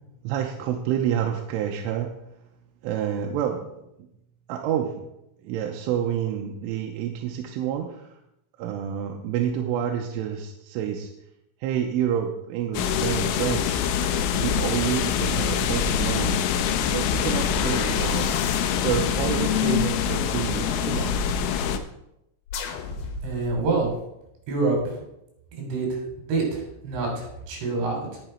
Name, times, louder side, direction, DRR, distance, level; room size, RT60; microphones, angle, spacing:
voice 1, 0.2-2.2 2.8-3.8 4.5-5.1 5.4-8.1 8.6-11.1 11.6-13.9 14.4-16.4 16.9-18.3 18.8-21.3, right 9 dB, 80° right, 2 dB, 3.3 m, -28 dB
sound 1, 12.7-21.8, left 7 dB, 90° left, 3.5 m, -24 dB
sound 2, 17.0-21.1 22.5-23.9, left 4 dB, 75° left, 3.5 m, -36 dB
voice 2, 23.2-23.9 24.5-25.0 25.6-28.2, right 3 dB, 65° right, 1 dB, 5.5 m, -27 dB
20.0 x 6.8 x 4.5 m, 0.85 s
omnidirectional pair, 5.8 m